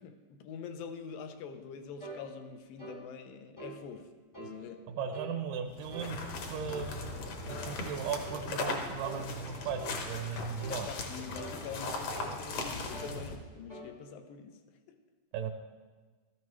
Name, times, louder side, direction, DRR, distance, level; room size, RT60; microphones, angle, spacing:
voice 1, 0.0-4.1 4.4-4.9 10.7-14.6 14.9-15.0, left 6 dB, 75° left, 7 dB, 2.3 m, -45 dB
sound 1, 2.0-2.2 2.8-3.0 3.6-3.8 4.3-4.6 5.1-5.3 5.9-6.1 6.7-6.9 7.5-7.7 8.2-8.5 9.0-9.2 9.8-10.0 10.6-10.8 11.3-11.6 12.1-12.4 12.9-13.2 13.7-13.9, right 2 dB, 20° left, 0.5 m, -45 dB
voice 2, 4.9-6.2 6.5-7.0 7.4-10.9 15.3-15.5, right 7 dB, 80° right, 4 dB, 2.1 m, -37 dB
sound 2, 5.7-13.4, left 3 dB, 60° left, 2.0 m, -38 dB
15.5 x 13.5 x 3.2 m, 1.3 s
omnidirectional pair, 4.3 m